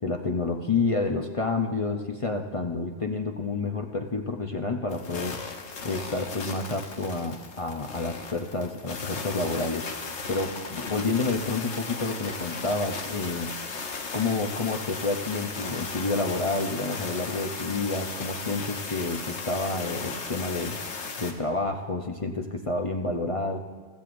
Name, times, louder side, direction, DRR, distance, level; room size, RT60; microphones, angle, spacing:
voice 1, 0.0-5.4 5.8-13.5 14.1-20.8 21.2-23.6, left 3 dB, 35° left, 3 dB, 0.6 m, -29 dB
sound 1, 4.9-21.3, left 4 dB, 80° left, 1.3 m, -36 dB
15.5 x 15.0 x 2.6 m, 1.5 s
omnidirectional pair, 1.2 m